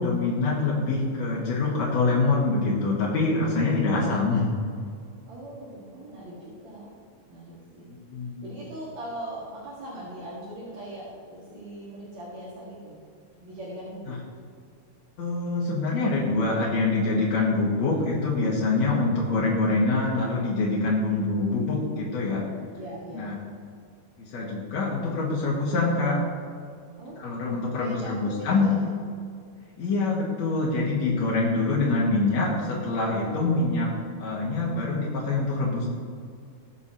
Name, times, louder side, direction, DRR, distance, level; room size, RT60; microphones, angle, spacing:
voice 1, 0.0-4.5 7.9-8.4 15.2-22.4 23.1-23.3 24.2-26.2 27.2-28.7 29.8-33.9 34.2-35.9, left 3 dB, 60° left, -6 dB, 2.4 m, -25 dB
voice 2, 5.2-6.9 7.3-7.9 8.4-13.0 13.4-14.1 22.7-23.3 27.0-27.2 27.7-28.9 31.6-32.1 33.1-33.8, right 1 dB, 60° right, -8 dB, 3.2 m, -40 dB
20.5 x 7.0 x 2.9 m, 2.2 s
omnidirectional pair, 3.7 m